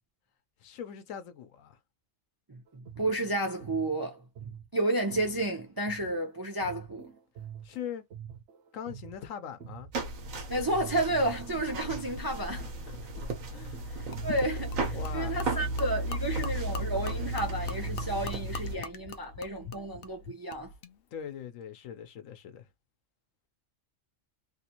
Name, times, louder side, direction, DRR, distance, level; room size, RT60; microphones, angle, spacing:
voice 1, 0.6-1.8 7.6-8.0 8.7-9.9 13.5-13.9 14.9-15.5 21.1-22.7, left 8 dB, 80° left, 1.1 m, -41 dB
voice 2, 2.5-7.1 10.5-12.6 14.2-20.7, right 1 dB, 30° right, 0.4 m, -31 dB
sound 1, 2.7-10.4 10.7-18.4, right 8 dB, 65° right, 1.0 m, -47 dB
sound 2, 9.9-18.8, right 2 dB, 80° right, 1.4 m, -35 dB
Gurgling / Liquid, 14.1-20.9, left 5 dB, 60° left, 0.6 m, -43 dB
3.2 x 2.5 x 2.9 m
omnidirectional pair, 1.4 m